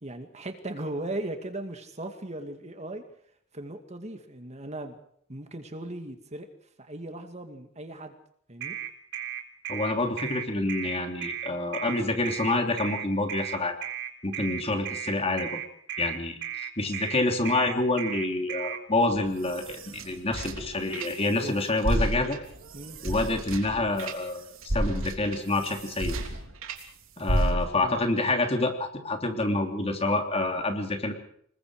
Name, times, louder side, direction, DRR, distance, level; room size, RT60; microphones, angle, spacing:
voice 1, 0.0-3.0 3.5-5.0 5.3-6.5 6.8-8.1 8.5-8.8 21.4-21.5 22.7-23.0 27.5-28.0, right 1 dB, 35° right, 6 dB, 2.3 m, -38 dB
sound 1, 8.6-18.8, right 10 dB, 60° right, 3.7 m, -35 dB
voice 2, 9.7-13.7 14.2-15.6 16.0-22.4 23.0-26.2 27.2-31.1, left 2 dB, 30° left, 4 dB, 3.2 m, -27 dB
sound 2, 19.1-21.5 21.8-26.8 27.3-28.0, right 1 dB, 85° right, 3.4 m, -31 dB
27.0 x 21.5 x 5.0 m, 0.66 s
head